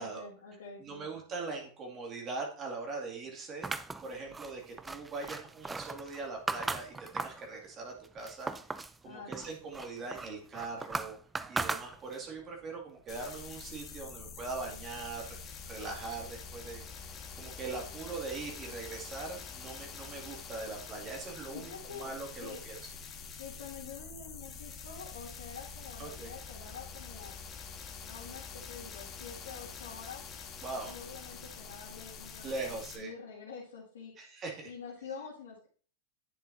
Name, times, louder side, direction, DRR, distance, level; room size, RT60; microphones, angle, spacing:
voice 1, 0.0-1.1 9.0-9.5 21.5-22.1 22.4-22.6 23.4-27.4 28.0-30.3 30.9-34.1 34.6-35.7, left 6 dB, 80° left, -5 dB, 2.0 m, -47 dB
voice 2, 0.8-3.7 4.0-8.5 9.0-11.2 11.5-15.4 15.7-22.8 26.0-26.3 30.6-30.9 32.4-33.1 34.2-34.7, right 3 dB, 35° right, 0 dB, 2.3 m, -41 dB
sound 1, 3.6-7.5 7.9-9.0 9.3-12.3, right 3 dB, 10° right, 0.4 m, -38 dB
sound 2, 13.1-33.0, left 5 dB, 35° left, 1.6 m, -46 dB
10.0 x 6.7 x 2.7 m, 0.43 s
hypercardioid pair, 100°, 0 cm